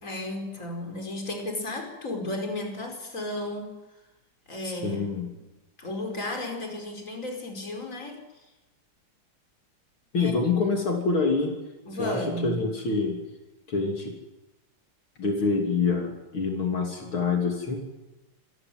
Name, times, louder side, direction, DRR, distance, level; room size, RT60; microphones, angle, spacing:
voice 1, 0.0-3.7 4.5-5.0 5.3-5.4 5.8-8.5 10.1-10.5 11.8-12.6, left 1 dB, 35° left, 3 dB, 5.4 m, -34 dB
voice 2, 4.6-5.3 10.1-11.6 12.0-13.2 13.7-14.1 15.2-17.8, left 4 dB, 75° left, 2 dB, 3.9 m, -26 dB
26.5 x 21.5 x 7.9 m, 1.1 s
omnidirectional pair, 2.3 m